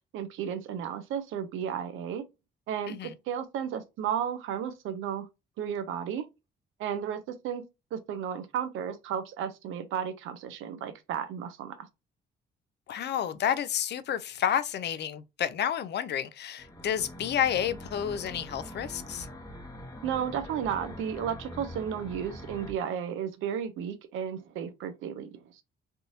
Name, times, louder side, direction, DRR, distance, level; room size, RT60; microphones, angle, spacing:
voice 1, 0.1-2.2 2.7-3.0 3.3-5.3 5.6-6.3 6.8-7.6 7.9-11.8 20.0-25.6, right 8 dB, 85° right, 0.7 m, -33 dB
voice 2, 12.9-19.3, left 9 dB, 60° left, 0.5 m, -30 dB
sound 1, 16.6-22.7, equal, 15° left, 0.9 m, -43 dB
3.5 x 2.6 x 2.7 m
cardioid pair, 90°, 20 cm